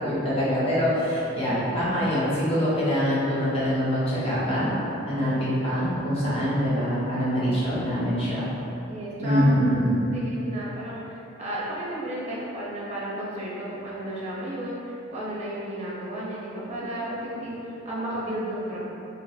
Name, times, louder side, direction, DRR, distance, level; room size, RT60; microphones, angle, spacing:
voice 1, 0.0-4.7 5.0-8.5 9.2-10.0, equal, 30° left, -10 dB, 0.9 m, -24 dB
voice 2, 8.9-9.6 10.1-18.8, right 1 dB, 35° right, -6 dB, 0.6 m, -33 dB
4.0 x 2.4 x 2.3 m, 2.9 s
head